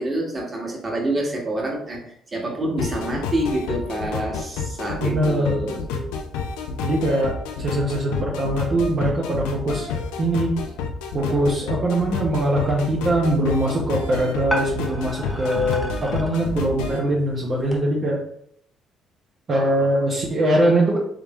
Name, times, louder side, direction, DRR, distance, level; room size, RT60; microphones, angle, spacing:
voice 1, 0.0-5.8, right 1 dB, 30° right, -1 dB, 1.6 m, -27 dB
sound 1, 2.8-17.0, left 5 dB, 85° left, 0.5 m, -29 dB
voice 2, 5.0-6.1 6.8-9.9 10.2-10.6 11.1-18.2 19.5-21.0, right 1 dB, 50° right, -3 dB, 0.9 m, -22 dB
sound 2, 12.6-17.8, equal, 10° left, 1.2 m, -34 dB
3.6 x 3.3 x 3.1 m, 0.68 s
hypercardioid pair, 55°, 0 cm